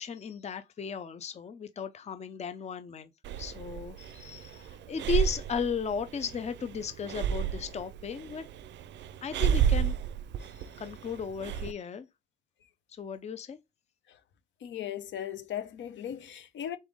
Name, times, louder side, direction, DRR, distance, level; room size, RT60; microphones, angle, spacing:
voice 1, 0.0-3.1 3.4-8.5 9.2-10.0 10.5-12.1 13.0-13.6, left 6 dB, 35° left, 0.6 m, -35 dB
Breathing, 3.2-11.7, right 9 dB, 65° right, 0.5 m, -32 dB
voice 2, 14.6-16.8, left 10 dB, 70° left, 0.8 m, -38 dB
4.1 x 3.4 x 3.5 m
cardioid pair, 90°, 20 cm